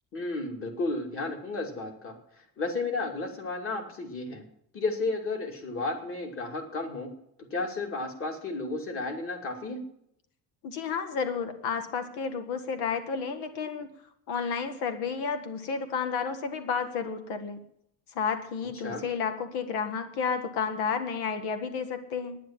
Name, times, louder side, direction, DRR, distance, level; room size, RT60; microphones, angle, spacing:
voice 1, 0.1-2.1 2.6-4.4 4.7-7.1 7.5-9.8 18.8-19.0, left 3 dB, 35° left, 4 dB, 2.5 m, -33 dB
voice 2, 10.6-13.9 14.3-17.6 18.1-22.4, left 6 dB, 90° left, 9 dB, 1.7 m, -31 dB
10.0 x 10.0 x 7.5 m, 0.73 s
cardioid pair, 165°, 38 cm